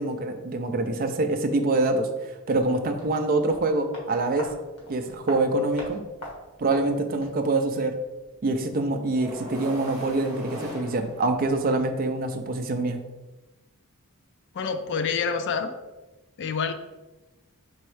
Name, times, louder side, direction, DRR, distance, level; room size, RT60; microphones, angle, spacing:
voice 1, 0.0-2.1 2.5-4.5 4.9-6.0 6.6-8.0 8.4-13.0, right 2 dB, 40° right, 6 dB, 0.4 m, -25 dB
sound 1, 2.5-7.5 7.7-7.8, left 1 dB, 85° left, 1.3 m, -42 dB
sound 2, 9.2-11.8, equal, 20° right, 1.4 m, -38 dB
voice 2, 14.5-15.7 16.4-16.7, left 5 dB, 55° left, 9 dB, 0.4 m, -27 dB
4.5 x 3.1 x 3.1 m, 1.1 s
head